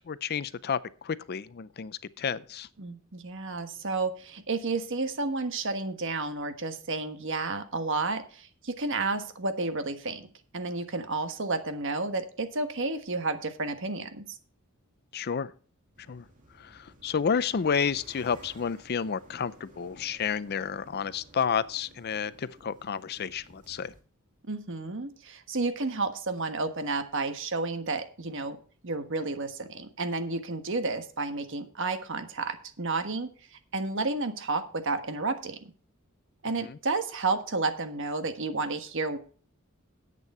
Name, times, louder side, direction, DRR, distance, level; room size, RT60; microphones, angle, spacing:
voice 1, 0.1-2.7 15.1-15.5 16.1-16.2 16.6-23.9 36.6-36.8, left 6 dB, 50° left, 0.5 m, -31 dB
voice 2, 2.8-10.3 10.5-14.2 24.5-28.6 28.8-33.3 33.7-35.7 36.4-39.2, right 3 dB, 60° right, 1.4 m, -31 dB
sound 1, 15.9-24.0, right 1 dB, 40° right, 2.4 m, -55 dB
11.0 x 8.4 x 4.3 m
head